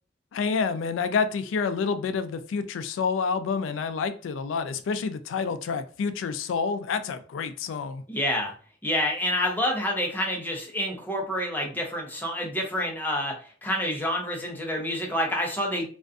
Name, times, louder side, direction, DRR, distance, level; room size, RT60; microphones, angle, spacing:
voice 1, 0.3-8.0, left 5 dB, 80° left, 0.3 m, -28 dB
voice 2, 8.1-8.5 8.8-15.9, left 1 dB, 10° left, 0.6 m, -28 dB
2.4 x 2.2 x 2.4 m
head